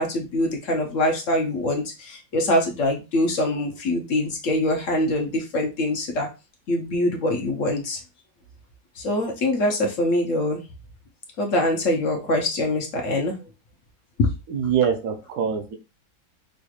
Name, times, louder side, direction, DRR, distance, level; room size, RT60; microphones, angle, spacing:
voice 1, 0.0-6.3 6.7-8.0 8.9-10.6 11.4-13.4 14.2-14.3, left 1 dB, 55° left, 1 dB, 1.2 m, -24 dB
voice 2, 14.5-15.8, right 7 dB, 70° right, 5 dB, 1.3 m, -24 dB
5.1 x 3.1 x 2.4 m, 0.28 s
omnidirectional pair, 1.8 m